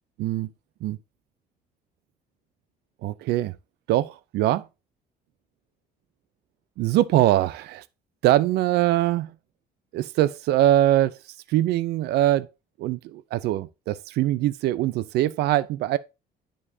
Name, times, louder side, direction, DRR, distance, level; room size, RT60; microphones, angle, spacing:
voice 1, 0.2-0.5 0.8-1.0 3.0-3.6 3.9-4.7 6.8-7.8 8.2-9.3 9.9-11.2 11.5-12.5 12.8-16.0, right 14 dB, 75° right, 0.5 m, -22 dB
9.9 x 5.1 x 2.7 m
cardioid pair, 110°, 17 cm